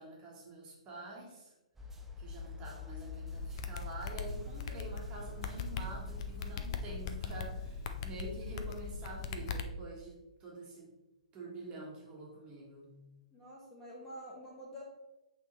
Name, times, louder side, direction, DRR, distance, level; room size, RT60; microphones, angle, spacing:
voice 1, 0.0-1.5 2.2-10.9 11.3-12.9, right 1 dB, 25° right, -3 dB, 1.5 m, -47 dB
sound 1, 1.8-8.4, left 3 dB, 5° right, 0.5 m, -48 dB
sound 2, 3.3-9.6, left 5 dB, 45° left, 0.5 m, -40 dB
voice 2, 13.3-14.8, equal, 10° left, -5 dB, 1.3 m, -48 dB
8.3 x 3.6 x 3.1 m, 0.94 s
hypercardioid pair, 145°, 4 cm